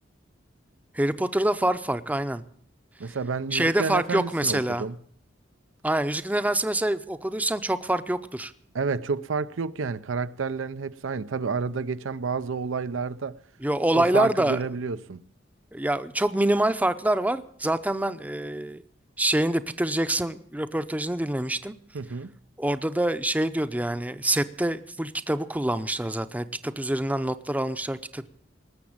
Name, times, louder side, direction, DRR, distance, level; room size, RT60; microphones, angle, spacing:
voice 1, 0.9-2.4 3.5-4.9 5.8-8.5 13.6-14.6 15.7-18.8 19.2-21.7 22.6-28.3, right 1 dB, 10° right, 0.6 m, -26 dB
voice 2, 3.0-5.0 8.7-13.4 13.9-15.2 21.9-22.3, right 5 dB, 85° right, 0.6 m, -30 dB
19.5 x 7.2 x 8.7 m
head